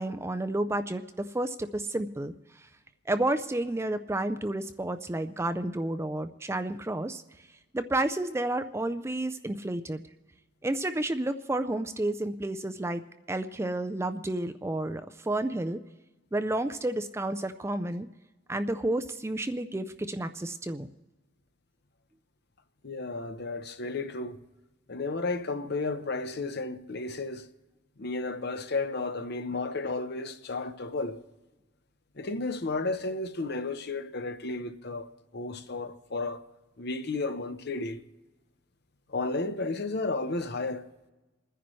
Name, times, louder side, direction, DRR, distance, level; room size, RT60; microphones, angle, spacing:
voice 1, 0.0-2.3 3.1-7.2 7.7-10.0 10.6-13.0 13.3-15.8 16.3-18.1 18.5-20.9, right 1 dB, 15° right, 0.4 m, -31 dB
voice 2, 22.8-24.4 24.9-27.5 28.0-31.2 32.2-35.1 35.3-36.4 36.8-38.0 39.1-40.8, left 3 dB, 55° left, 0.8 m, -33 dB
29.0 x 10.0 x 3.1 m
head